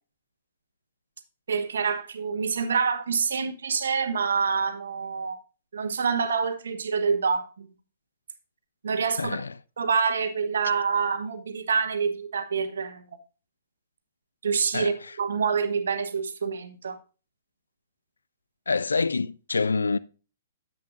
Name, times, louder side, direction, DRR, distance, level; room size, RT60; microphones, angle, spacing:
voice 1, 1.5-5.4 5.7-7.7 8.8-9.4 9.8-13.0 14.4-17.0, right 5 dB, 70° right, 1.1 m, -26 dB
voice 2, 9.2-9.5 14.7-15.1 18.7-20.0, left 4 dB, 80° left, 0.3 m, -26 dB
10.5 x 7.6 x 2.5 m
figure-of-eight pair, 120°, 0 cm